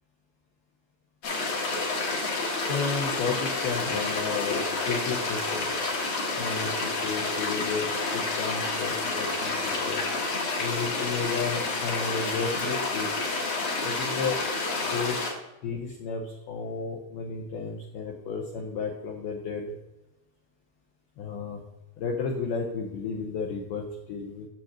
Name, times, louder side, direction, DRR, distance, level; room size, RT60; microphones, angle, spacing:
sound 1, 1.2-15.3, left 3 dB, 70° left, 1.6 m, -29 dB
voice 1, 2.7-5.7 6.4-10.1 10.6-13.1 13.8-14.4 14.8-15.2 15.6-19.8 21.2-21.6 22.0-24.5, left 5 dB, 90° left, 1 dB, 2.1 m, -33 dB
9.0 x 7.5 x 2.8 m, 0.97 s
omnidirectional pair, 5.7 m